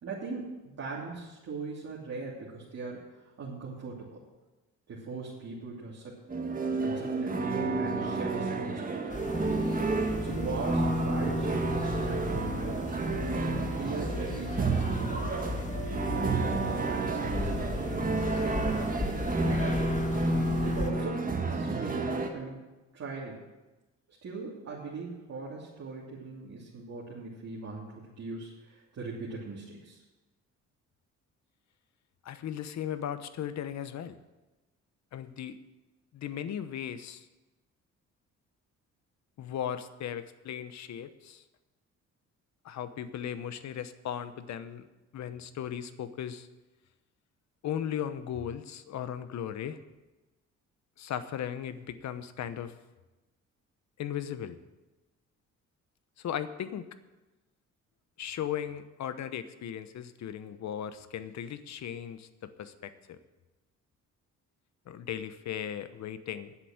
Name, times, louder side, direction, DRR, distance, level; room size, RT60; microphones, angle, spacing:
voice 1, 0.0-4.2 4.9-6.2 6.8-9.0 10.2-12.8 13.3-15.4 16.1-18.5 19.6-19.9 20.6-22.6 22.9-23.5 24.2-30.0, right 3 dB, 55° right, -7 dB, 3.1 m, -40 dB
sound 1, 6.3-22.3, right 2 dB, 30° right, 1.7 m, -30 dB
sound 2, 9.1-20.9, left 2 dB, 25° left, 1.7 m, -36 dB
voice 2, 32.2-34.2 35.1-35.6 36.1-37.3 39.4-41.4 42.6-44.9 45.1-46.5 47.6-49.8 51.0-52.7 54.0-54.6 56.2-56.9 58.2-63.2 64.9-66.5, left 9 dB, 65° left, 12 dB, 1.0 m, -37 dB
10.0 x 8.0 x 8.9 m, 1.1 s
cardioid pair, 90°, 30 cm